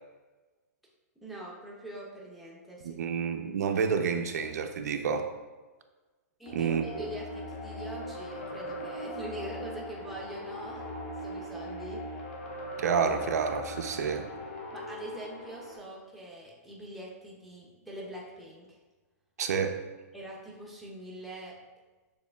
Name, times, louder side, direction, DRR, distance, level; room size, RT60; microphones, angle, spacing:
voice 1, 1.2-3.1 6.4-10.9 11.2-12.0 14.7-18.8 20.1-21.6, right 1 dB, ahead, -4 dB, 0.4 m, -43 dB
voice 2, 2.8-5.3 6.5-6.8 12.8-14.2 19.4-19.8, right 6 dB, 85° right, 6 dB, 0.5 m, -29 dB
sound 1, 6.5-15.8, left 1 dB, 50° left, 0.9 m, -40 dB
6.6 x 3.1 x 2.2 m, 1.3 s
hypercardioid pair, 170°, 9 cm